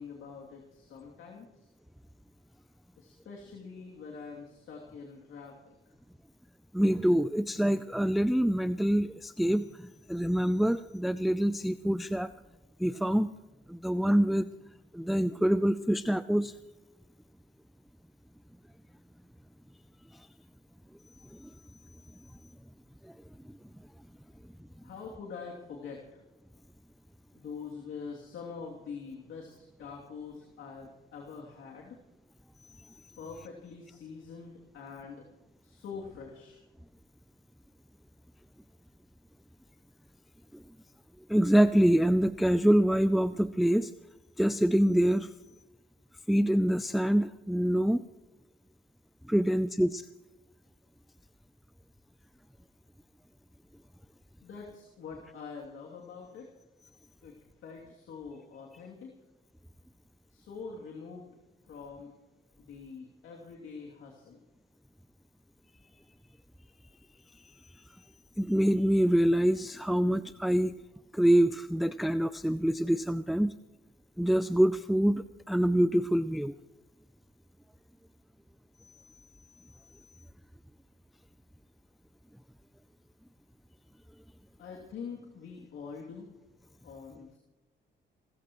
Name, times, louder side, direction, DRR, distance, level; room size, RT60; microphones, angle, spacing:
voice 1, 0.0-1.7 3.0-5.9 24.8-26.2 27.3-32.0 33.2-35.2 35.6-36.6 54.4-56.5 57.2-59.1 60.3-61.3 61.7-62.1 62.6-64.4 84.6-86.3 86.8-87.4, left 5 dB, 75° left, -1 dB, 2.8 m, -45 dB
voice 2, 6.7-12.3 12.8-13.3 13.7-14.5 14.9-16.5 21.4-21.5 41.3-43.9 44.4-45.3 46.3-48.0 49.3-50.0 68.4-70.7 71.1-73.5 74.2-76.5, equal, ahead, 13 dB, 0.4 m, -25 dB
28.0 x 14.5 x 3.1 m, 1.0 s
cardioid pair, 90°, 20 cm